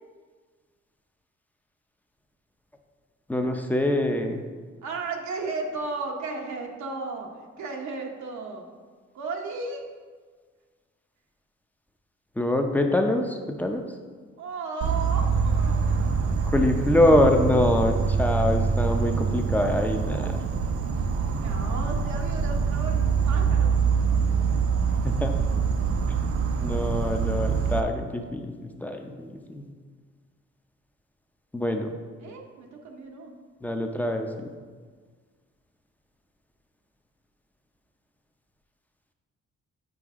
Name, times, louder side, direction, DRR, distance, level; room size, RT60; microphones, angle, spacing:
voice 1, 3.3-4.4 12.4-13.8 16.5-20.4 25.0-25.4 26.1-26.2 26.6-29.7 31.5-31.9 33.6-34.6, left 1 dB, 5° left, 4 dB, 0.7 m, -24 dB
voice 2, 4.8-8.6 9.1-9.9 14.4-16.5 21.4-23.7 32.2-33.3, right 3 dB, 70° right, 1 dB, 1.0 m, -35 dB
Insect, 14.8-27.8, right 5 dB, 50° right, 0.6 m, -25 dB
7.9 x 4.7 x 3.6 m, 1.5 s
cardioid pair, 90°, 30 cm